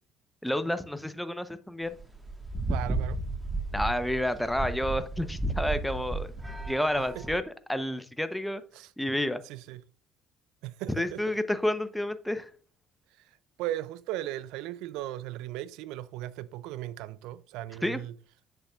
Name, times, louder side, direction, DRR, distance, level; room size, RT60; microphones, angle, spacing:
voice 1, 0.4-1.9 3.7-6.3 6.7-7.4 7.7-8.6 9.0-9.4 11.0-12.5 17.8-18.0, left 1 dB, 5° left, 0.8 m, -30 dB
sound 1, 1.9-7.4, right 2 dB, 15° right, 1.5 m, -33 dB
voice 2, 2.7-3.2 6.9-7.4 8.7-8.9 9.4-9.8 10.6-11.4 13.1-18.2, right 14 dB, 75° right, 0.3 m, -37 dB
8.0 x 6.8 x 2.4 m
hypercardioid pair, 60°, 0 cm